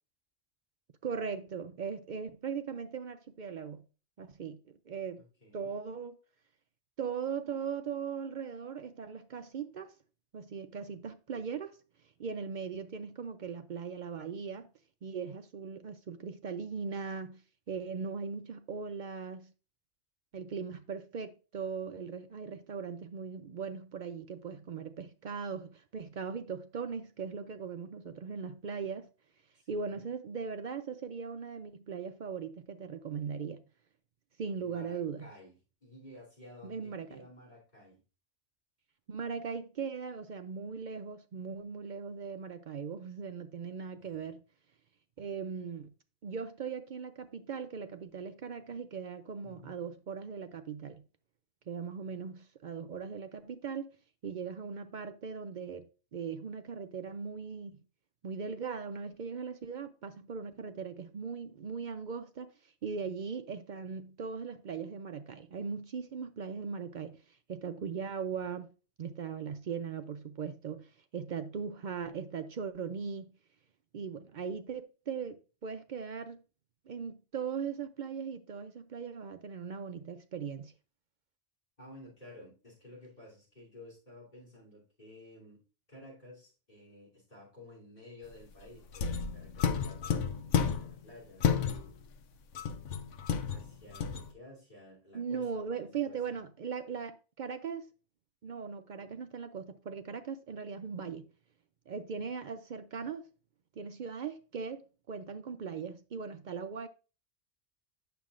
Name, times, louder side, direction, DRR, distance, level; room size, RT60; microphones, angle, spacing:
voice 1, 1.0-3.9 4.2-5.2 5.5-6.1 7.0-9.9 10.3-11.8 12.2-14.7 15.0-17.4 17.7-19.5 20.3-29.1 29.7-33.6 34.4-35.3 36.6-37.2 39.1-44.4 45.2-45.9 46.2-51.0 51.7-53.9 54.2-55.8 56.1-57.8 58.2-67.2 67.5-68.7 69.0-73.3 73.9-76.4 76.9-80.7 95.1-97.9 98.4-101.3 101.9-103.3 103.8-106.9, right 6 dB, 60° right, 0.5 m, -39 dB
voice 2, 5.2-5.8 29.6-30.1 34.5-35.5 35.8-38.0 44.0-44.2 49.4-49.8 81.8-85.6 85.9-92.0 93.5-96.4, left 1 dB, 35° left, 3.3 m, -53 dB
sound 1, 88.9-91.0 91.4-92.1 92.5-94.3, left 7 dB, 85° left, 1.0 m, -31 dB
9.0 x 6.8 x 2.5 m
omnidirectional pair, 1.2 m